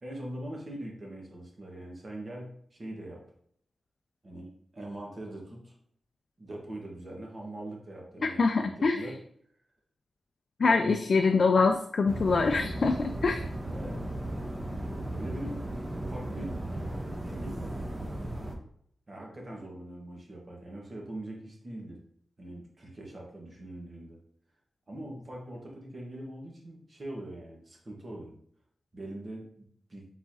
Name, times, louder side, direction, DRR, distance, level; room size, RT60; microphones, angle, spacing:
voice 1, 0.0-3.2 4.2-5.7 6.4-9.2 10.6-11.0 13.7-14.0 15.1-15.6 16.0-16.5 16.8-17.8 19.1-22.0 22.4-24.2 24.9-28.4 28.9-30.1, right 1 dB, 40° right, -1 dB, 1.4 m, -42 dB
voice 2, 8.2-9.1 10.6-13.4, left 4 dB, 55° left, 5 dB, 0.3 m, -24 dB
sound 1, 12.1-18.5, right 1 dB, 25° right, 0.9 m, -36 dB
4.5 x 4.0 x 2.8 m, 0.65 s
cardioid pair, 80°, 0 cm